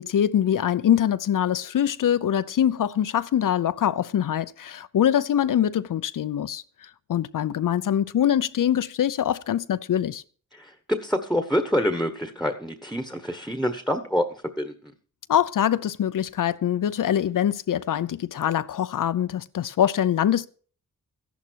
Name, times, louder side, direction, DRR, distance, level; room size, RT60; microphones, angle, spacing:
voice 1, 0.0-10.2 15.3-20.5, left 10 dB, 65° left, 0.7 m, -24 dB
voice 2, 10.6-14.2 14.6-14.7, equal, ahead, 1.3 m, -26 dB
14.0 x 11.0 x 4.6 m
wide cardioid pair, 100°, 34 cm